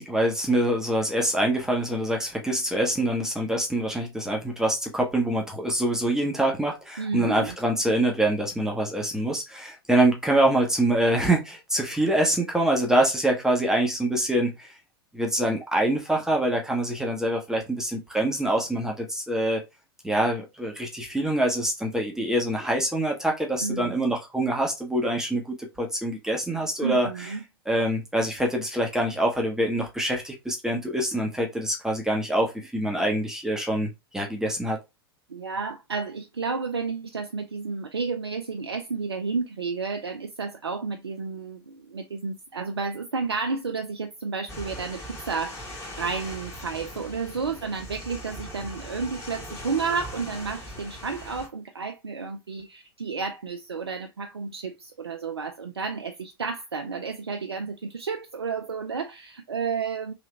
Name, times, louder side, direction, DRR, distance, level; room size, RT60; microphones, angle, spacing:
voice 1, 0.0-14.7 15.1-19.6 20.0-27.3 27.7-34.8, right 1 dB, 5° right, 0.8 m, -25 dB
voice 2, 7.0-7.6 23.6-24.0 26.8-27.4 35.3-60.1, right 5 dB, 80° right, 0.4 m, -31 dB
sound 1, 44.5-51.5, equal, 20° left, 1.3 m, -40 dB
3.2 x 2.8 x 3.1 m
figure-of-eight pair, 90°, 13 cm